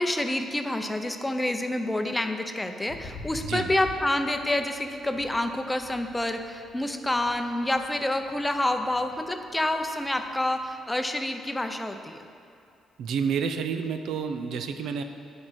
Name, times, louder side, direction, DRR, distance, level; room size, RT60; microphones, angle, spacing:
voice 1, 0.0-12.2, left 1 dB, 10° left, 6 dB, 0.6 m, -28 dB
sound 1, 2.9-10.8, left 3 dB, 80° left, 1.1 m, -47 dB
voice 2, 3.4-3.7 13.0-15.0, right 6 dB, 75° right, 7 dB, 0.6 m, -29 dB
9.6 x 5.2 x 6.3 m, 2.6 s
cardioid pair, 90°, 0 cm